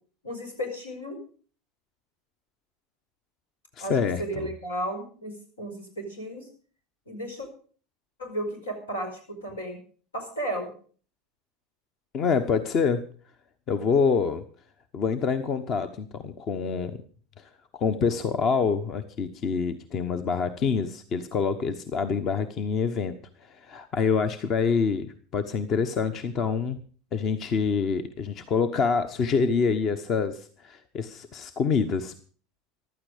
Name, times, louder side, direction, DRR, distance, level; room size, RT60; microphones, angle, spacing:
voice 1, 0.2-1.2 3.8-6.4 7.1-7.5 8.2-9.8 10.1-10.7, right 1 dB, 90° left, 4 dB, 5.2 m, -34 dB
voice 2, 3.8-4.5 12.1-13.0 13.7-14.4 14.9-17.0 17.7-23.1 23.4-26.8 27.1-32.1, left 5 dB, 45° left, 11 dB, 1.1 m, -26 dB
15.0 x 12.0 x 5.1 m, 0.42 s
hypercardioid pair, 80°, 0 cm